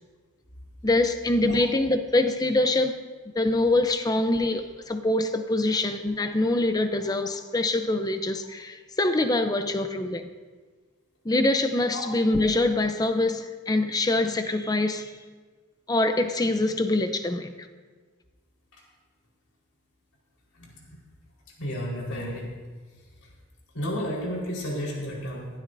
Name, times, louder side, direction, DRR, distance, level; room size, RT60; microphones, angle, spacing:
voice 1, 0.8-3.0 3.3-10.3 11.2-15.1 15.9-17.5, left 2 dB, 20° left, 0.6 m, -24 dB
voice 2, 20.6-21.0 21.6-22.5 23.7-25.5, equal, 80° left, 4.4 m, -32 dB
21.5 x 12.5 x 2.7 m
head